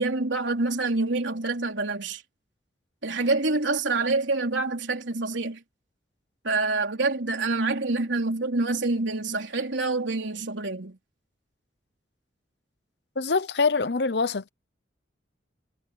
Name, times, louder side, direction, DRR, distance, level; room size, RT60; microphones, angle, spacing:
voice 1, 0.0-2.2 3.0-5.6 6.4-11.0, right 3 dB, 85° right, 3.6 m, -26 dB
voice 2, 13.2-14.5, left 4 dB, 65° left, 0.9 m, -24 dB
head